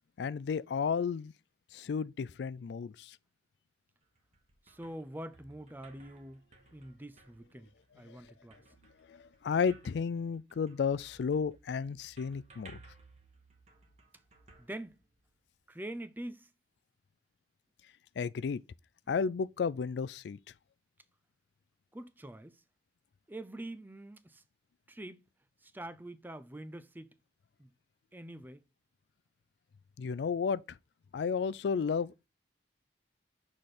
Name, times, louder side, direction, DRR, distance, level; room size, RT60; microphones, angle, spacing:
voice 1, 0.2-1.3 1.7-3.2 8.1-8.2 9.1-12.8 18.2-18.6 19.1-20.4 30.0-30.8 31.1-32.3, left 6 dB, 70° left, 0.3 m, -33 dB
sound 1, 4.0-15.5, right 3 dB, 40° right, 1.2 m, -60 dB
voice 2, 4.6-6.4 6.7-8.6 14.6-15.0 15.7-16.5 21.9-22.6 23.3-24.4 24.9-25.3 25.6-27.2 27.6-27.7 28.1-28.6, right 1 dB, 10° right, 0.4 m, -45 dB
6.1 x 5.0 x 4.1 m
head